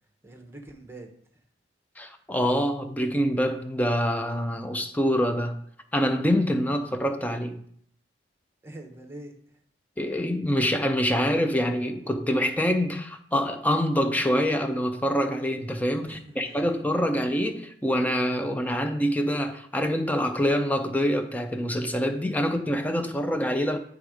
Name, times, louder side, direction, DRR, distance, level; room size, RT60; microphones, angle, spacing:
voice 1, 0.2-1.1 8.6-9.4 16.0-16.7, right 1 dB, 15° right, 0.8 m, -44 dB
voice 2, 2.0-5.6 5.9-7.6 10.0-23.8, equal, 10° left, 0.5 m, -25 dB
9.6 x 3.5 x 4.9 m
head